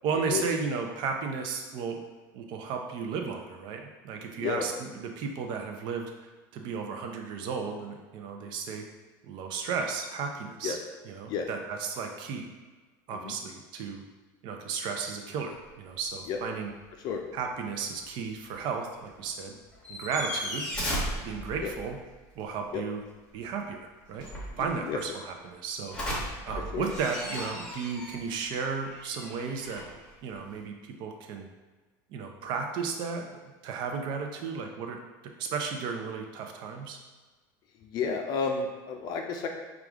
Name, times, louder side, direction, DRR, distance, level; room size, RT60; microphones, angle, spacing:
voice 1, 0.0-2.0 2.3-6.1 6.5-8.8 9.2-10.8 11.0-12.5 13.1-14.0 14.4-16.7 17.3-19.5 19.9-20.7 21.2-22.0 22.4-23.0 23.3-24.3 24.6-29.8 30.2-31.5 32.1-35.0 35.4-37.0, right 5 dB, 50° right, 3 dB, 0.6 m, -34 dB
sound 1, 15.6-15.7 16.0-16.1 16.4-16.8 18.6-18.7 19.1-19.2 19.6-22.1 24.0-25.1 25.9-30.6, equal, 10° left, 1.1 m, -36 dB
voice 2, 24.6-25.0 26.7-26.9 37.8-39.5, left 6 dB, 45° left, 3 dB, 0.5 m, -31 dB
4.8 x 2.4 x 3.5 m, 1.3 s
supercardioid pair, 135°, 10 cm